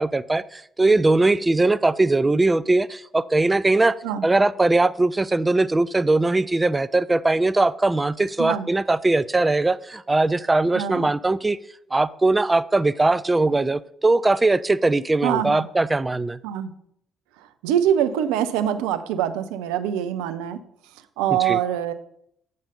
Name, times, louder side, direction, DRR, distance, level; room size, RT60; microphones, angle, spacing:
voice 1, 0.0-3.9 4.2-11.6 11.9-16.4 21.5-21.6, right 2 dB, 20° right, 17 dB, 0.4 m, -20 dB
voice 2, 10.7-11.1 15.2-15.7 16.4-16.7 17.4-20.6 21.2-21.9, right 10 dB, 75° right, 11 dB, 0.5 m, -24 dB
7.6 x 5.5 x 5.1 m, 0.71 s
hypercardioid pair, 45°, 0 cm